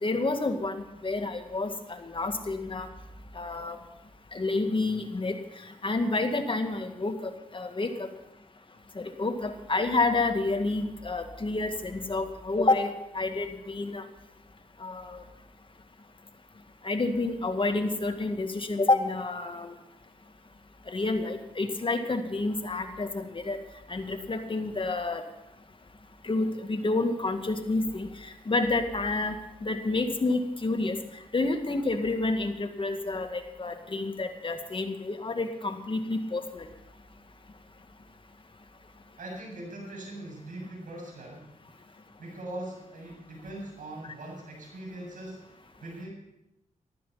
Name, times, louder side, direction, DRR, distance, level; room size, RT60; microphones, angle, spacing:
voice 1, 0.0-2.9 3.4-3.8 4.3-5.4 5.8-8.1 9.0-14.0 14.8-15.2 16.8-19.7 20.9-23.6 23.9-25.2 26.2-29.4 29.6-31.0 31.3-36.7, left 3 dB, 40° left, 6 dB, 2.0 m, -29 dB
voice 2, 39.2-41.5 41.9-46.1, right 1 dB, 75° right, -1 dB, 7.6 m, -41 dB
14.5 x 13.5 x 5.7 m, 0.85 s
cardioid pair, 60°, 14 cm